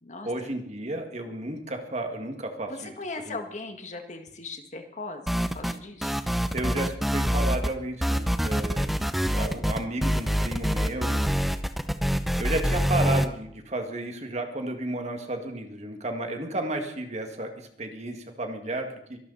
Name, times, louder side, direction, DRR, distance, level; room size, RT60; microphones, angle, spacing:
voice 1, 0.2-2.9 3.3-3.4 6.5-11.3 12.4-19.2, right 1 dB, 40° right, 5 dB, 2.0 m, -33 dB
voice 2, 2.7-6.2, left 3 dB, 45° left, 5 dB, 1.9 m, -39 dB
sound 1, 5.3-5.8 6.0-7.7 8.0-13.3, equal, ahead, 0.7 m, -25 dB
24.0 x 12.5 x 4.1 m, 0.71 s
head